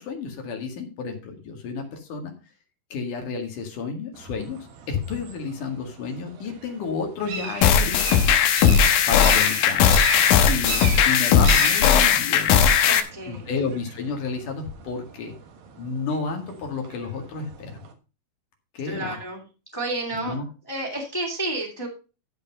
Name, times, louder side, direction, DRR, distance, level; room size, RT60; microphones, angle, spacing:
voice 1, 0.0-2.3 2.9-8.3 9.1-9.8 10.5-12.6 13.3-15.3 15.8-17.8 18.7-19.2 20.1-20.4, left 5 dB, 65° left, 4 dB, 3.4 m, -31 dB
sound 1, 4.1-17.9, right 6 dB, 80° right, 3.2 m, -37 dB
sound 2, 7.6-13.0, left 8 dB, 90° left, 2.8 m, -18 dB
voice 2, 12.9-13.5 18.8-19.4 19.7-20.4 20.7-21.9, right 2 dB, 5° left, 0 dB, 2.5 m, -30 dB
13.0 x 5.2 x 5.4 m, 0.33 s
omnidirectional pair, 4.0 m